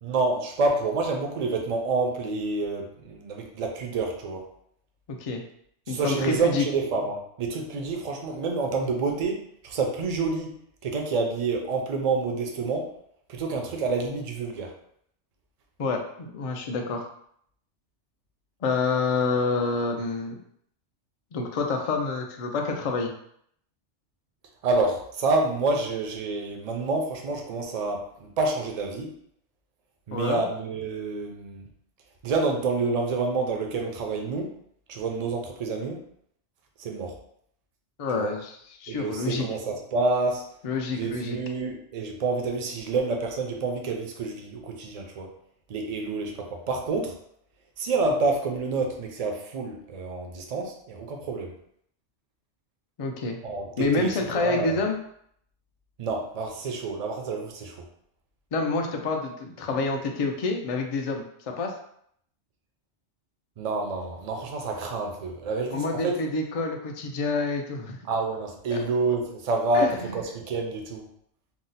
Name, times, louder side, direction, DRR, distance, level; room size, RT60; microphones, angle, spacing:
voice 1, 0.0-4.4 5.9-10.5 10.8-12.9 13.3-14.7 24.6-29.1 30.1-31.7 32.2-34.5 34.9-36.0 36.8-37.1 38.1-38.3 38.9-40.4 40.9-45.3 45.7-47.1 47.8-51.5 53.4-54.8 56.0-57.8 63.6-66.2 68.1-71.1, right 3 dB, 50° right, 2 dB, 0.4 m, -28 dB
voice 2, 5.1-5.4 5.9-6.7 15.8-17.1 18.6-20.4 21.3-23.1 30.1-30.4 38.0-38.5 38.8-39.5 40.6-41.4 53.0-53.4 53.8-55.0 58.5-61.2 61.6-61.7 65.7-68.0 68.7-68.8 69.7-70.0, left 3 dB, 65° left, 3 dB, 0.3 m, -27 dB
2.7 x 2.0 x 3.9 m, 0.68 s
omnidirectional pair, 1.2 m